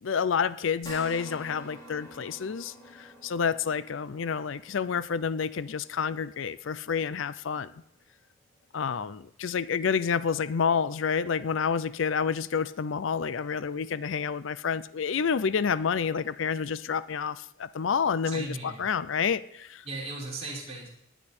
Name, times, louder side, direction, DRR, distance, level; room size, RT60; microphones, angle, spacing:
voice 1, 0.0-7.7 8.7-19.8, left 6 dB, 70° left, 16 dB, 0.5 m, -29 dB
sound 1, 0.8-9.4 9.9-10.0 11.4-11.5, equal, 20° left, 4.6 m, -50 dB
voice 2, 18.2-18.8 19.8-20.9, right 2 dB, 30° right, -5 dB, 5.1 m, -37 dB
18.5 x 9.9 x 4.3 m, 0.75 s
head